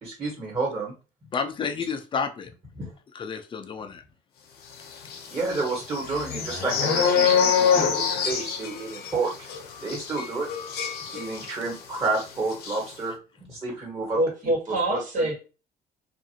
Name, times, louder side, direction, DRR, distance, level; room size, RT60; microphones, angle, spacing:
voice 1, 0.0-0.9 2.8-2.9 5.3-9.5 9.8-10.5 11.1-13.1 13.5-14.2 14.9-15.3, right 3 dB, 25° right, 1.5 m, -30 dB
voice 2, 1.3-2.5 3.1-4.0, left 5 dB, 30° left, 0.5 m, -30 dB
sound 1, 5.0-11.8 12.0-12.2 12.5-12.8, left 7 dB, 70° left, 0.7 m, -25 dB
voice 3, 14.2-15.4, right 1 dB, 50° right, 1.4 m, -25 dB
2.6 x 2.5 x 2.7 m
cardioid pair, 110°, 17 cm